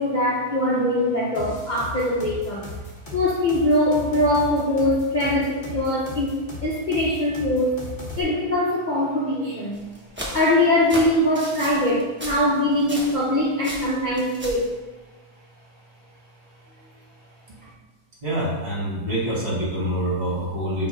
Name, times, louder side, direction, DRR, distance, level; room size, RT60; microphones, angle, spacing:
voice 1, 0.0-2.7 3.1-7.7 8.2-9.8 10.3-14.7, left 1 dB, 80° left, -7 dB, 0.4 m, -22 dB
sound 1, 1.3-8.2, left 2 dB, 30° left, 1.3 m, -36 dB
sound 2, 9.7-13.3 13.6-14.7, equal, 10° right, 0.7 m, -35 dB
voice 2, 18.2-20.9, right 1 dB, 35° right, -5 dB, 1.7 m, -26 dB
6.0 x 3.3 x 5.2 m, 1.2 s
omnidirectional pair, 2.2 m